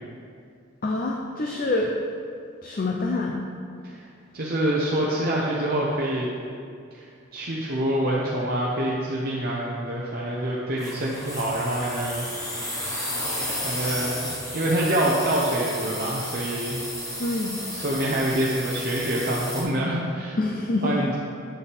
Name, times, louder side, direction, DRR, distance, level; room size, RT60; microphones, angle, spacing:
voice 1, 0.8-2.0 2.6-3.4 17.2-17.6 20.4-21.0, left 2 dB, 40° left, 0 dB, 0.5 m, -26 dB
voice 2, 4.3-6.3 6.9-7.0 7.3-12.3 12.5-12.8 13.5-14.2 14.5-16.8 17.7-20.4 20.8-21.1, right 1 dB, 45° right, -5 dB, 0.8 m, -26 dB
sound 1, 10.8-19.6, left 1 dB, 15° left, 1.2 m, -33 dB
8.9 x 6.9 x 3.5 m, 2.3 s
head